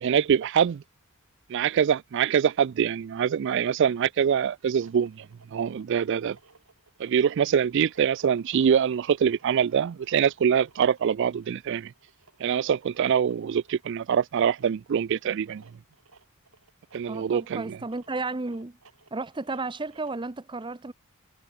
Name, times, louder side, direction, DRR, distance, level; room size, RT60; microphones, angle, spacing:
voice 1, 0.0-0.8 1.5-5.3 5.5-6.4 7.0-11.9 12.4-15.6 16.9-17.8, right 8 dB, 55° right, 0.3 m, -24 dB
sound 1, 4.6-20.3, right 4 dB, 75° right, 4.8 m, -58 dB
voice 2, 17.1-18.8 19.1-20.9, right 3 dB, 20° right, 0.7 m, -33 dB
head